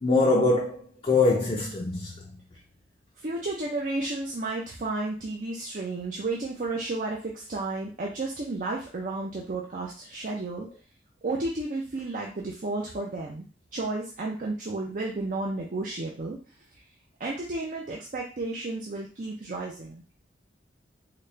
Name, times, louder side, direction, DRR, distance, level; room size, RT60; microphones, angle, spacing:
voice 1, 0.0-2.1, left 3 dB, 30° left, 0.6 m, -23 dB
voice 2, 3.2-10.7 11.2-13.5 13.7-16.4 17.2-20.0, right 2 dB, 45° right, 0.6 m, -32 dB
4.1 x 2.2 x 3.2 m
head